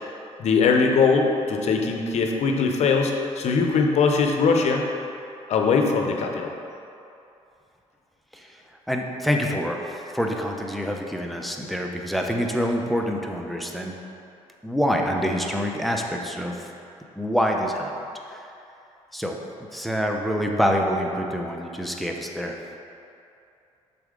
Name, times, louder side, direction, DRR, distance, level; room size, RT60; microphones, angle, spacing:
voice 1, 0.4-4.8 5.5-6.5, left 5 dB, 65° left, 3 dB, 0.7 m, -21 dB
voice 2, 8.9-14.0 14.6-16.7 17.2-17.9 18.3-18.4 19.1-19.4 19.7-22.5, equal, ahead, 1 dB, 0.6 m, -26 dB
6.8 x 4.1 x 3.8 m, 2.7 s
cardioid pair, 85°, 12 cm